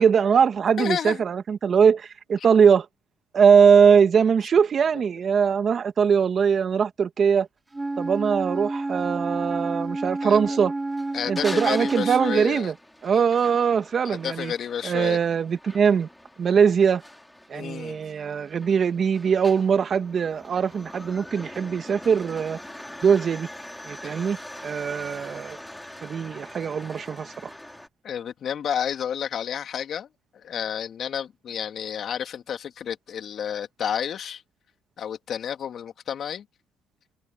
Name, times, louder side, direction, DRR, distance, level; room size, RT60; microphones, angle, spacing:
voice 1, 0.0-2.9 3.3-7.5 8.0-10.7 11.3-12.7 13.0-14.5 14.8-16.1 16.4-17.0 17.5-22.6 23.0-23.5 23.9-24.4 24.6-25.6 26.0-27.3, right 6 dB, 45° right, 2.0 m, -21 dB
voice 2, 0.8-1.2 10.2-10.6 11.1-12.7 13.1-13.3 14.0-15.2 17.5-18.0 28.0-30.1 30.3-34.4 35.0-36.4, left 8 dB, 55° left, 2.7 m, -31 dB
Wind instrument woodwind instrument, 7.7-12.5, right 2 dB, 15° right, 6.0 m, -30 dB
sound 1, 10.9-27.9, left 1 dB, 5° left, 4.8 m, -43 dB
supercardioid pair, 80°, 0 cm